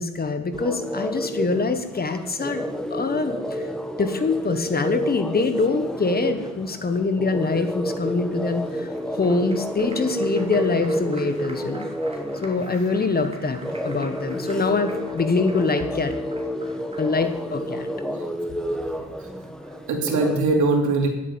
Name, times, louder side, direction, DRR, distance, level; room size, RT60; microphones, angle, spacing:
voice 1, 0.0-3.6 4.0-8.9 9.2-11.9 12.4-16.1 17.0-17.9, left 3 dB, 30° left, 8 dB, 1.3 m, -24 dB
sound 1, 0.5-20.4, equal, ahead, 1.2 m, -30 dB
Applause, 8.7-17.4, right 2 dB, 20° right, 2.7 m, -46 dB
voice 2, 19.6-21.1, right 3 dB, 75° right, 2 dB, 2.8 m, -22 dB
9.9 x 8.6 x 8.5 m, 1.0 s
cardioid pair, 90°, 30 cm